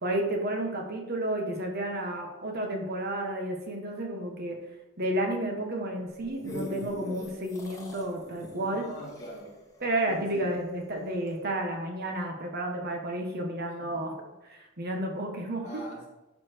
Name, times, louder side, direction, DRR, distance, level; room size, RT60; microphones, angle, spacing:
voice 1, 0.0-4.6 5.0-8.9 9.8-14.1 14.4-15.8, right 1 dB, 50° right, 2 dB, 1.4 m, -31 dB
sound 1, 6.1-10.7 11.3-11.4, left 1 dB, 15° left, 1.5 m, -42 dB
voice 2, 8.6-9.6 10.1-10.5 13.8-14.0 15.6-16.1, equal, 35° left, -5 dB, 2.8 m, -43 dB
11.5 x 4.4 x 4.5 m, 1.0 s
head